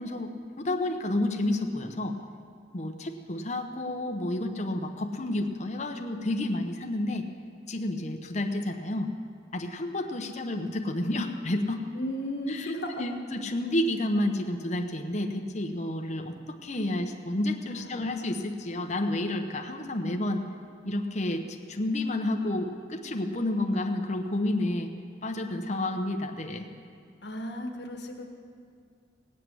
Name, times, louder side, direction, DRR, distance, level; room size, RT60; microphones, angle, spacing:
voice 1, 0.0-2.2 2.7-7.3 7.7-9.1 9.5-11.8 12.5-20.5 20.8-24.9 25.2-26.6, left 1 dB, 40° left, 4 dB, 1.0 m, -30 dB
voice 2, 11.9-13.0 17.7-18.0 27.2-28.3, equal, 65° left, 3 dB, 1.6 m, -34 dB
18.5 x 8.2 x 7.8 m, 2.3 s
head